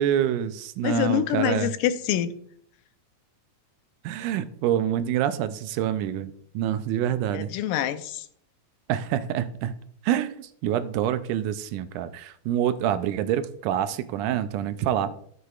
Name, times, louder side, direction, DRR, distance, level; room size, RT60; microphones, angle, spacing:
voice 1, 0.0-1.7 4.0-7.5 8.9-9.7 10.0-15.1, right 10 dB, 80° right, 2.0 m, -26 dB
voice 2, 0.8-2.3 7.3-8.3, left 11 dB, 85° left, 2.2 m, -26 dB
12.5 x 8.2 x 2.4 m
omnidirectional pair, 3.7 m